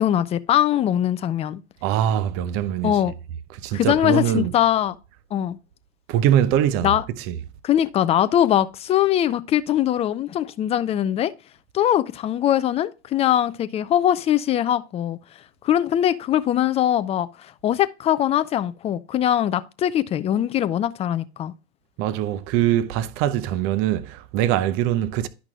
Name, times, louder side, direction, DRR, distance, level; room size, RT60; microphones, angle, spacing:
voice 1, 0.0-1.6 2.8-3.1 3.7-5.0 5.3-5.6 6.8-7.0 7.6-11.3 11.7-15.2 15.6-21.5, left 11 dB, 20° left, 0.4 m, -21 dB
voice 2, 1.8-3.0 3.6-4.5 6.1-7.4 22.0-25.3, right 11 dB, 40° right, 0.8 m, -22 dB
10.5 x 5.9 x 2.3 m
hypercardioid pair, 95°, 33 cm